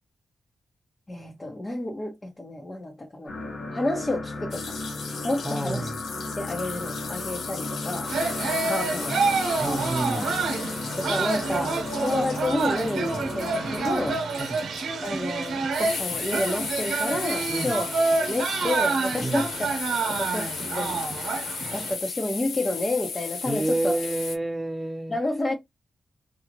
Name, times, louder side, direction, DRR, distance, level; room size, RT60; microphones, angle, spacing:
voice 1, 1.1-3.3 3.7-4.8 5.2-5.9 6.3-9.4 11.0-14.2 15.0-17.9 18.2-19.7 20.2-21.0 21.7-24.0 25.1-25.5, left 1 dB, 30° left, 1.0 m, -30 dB
sound 1, 3.3-14.1, left 2 dB, 60° left, 1.1 m, -35 dB
sound 2, 4.5-24.4, left 5 dB, 85° left, 0.5 m, -36 dB
voice 2, 5.4-5.9 9.6-10.4 14.4-14.6 17.5-17.8 19.2-19.5 23.5-25.1, right 1 dB, 10° right, 1.0 m, -29 dB
sound 3, 8.1-21.9, right 4 dB, 80° right, 0.9 m, -28 dB
2.7 x 2.4 x 2.9 m
cardioid pair, 50°, 0 cm